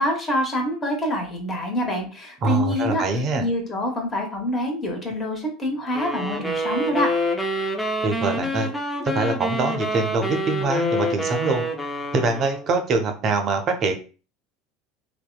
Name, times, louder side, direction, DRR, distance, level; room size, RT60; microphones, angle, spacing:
voice 1, 0.0-7.1, left 1 dB, 30° left, 1 dB, 1.1 m, -26 dB
voice 2, 2.4-3.5 8.0-8.7 9.0-11.6 12.1-13.9, right 3 dB, 40° right, 5 dB, 0.5 m, -24 dB
sound 1, 5.9-12.7, equal, 5° left, 0.5 m, -27 dB
2.7 x 2.2 x 2.2 m, 0.36 s
figure-of-eight pair, 70°, 0 cm